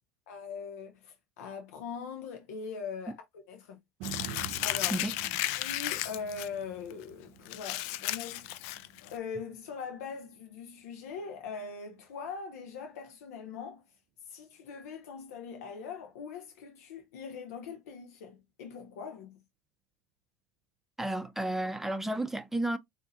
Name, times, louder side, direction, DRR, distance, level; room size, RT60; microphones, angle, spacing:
voice 1, 0.3-3.8 4.6-5.0 5.6-8.6 9.1-13.8 14.3-19.4, left 5 dB, 90° left, 0.8 m, -41 dB
Crumpling crinkling, 4.0-6.5 6.9-7.0 7.4-9.1, left 16 dB, 70° left, 0.4 m, -34 dB
sound 1, 4.0-12.2 12.6-12.7, right 9 dB, 65° right, 0.5 m, -48 dB
voice 2, 21.0-22.8, right 1 dB, 5° right, 0.7 m, -32 dB
3.9 x 2.7 x 2.6 m
supercardioid pair, 105°, 8 cm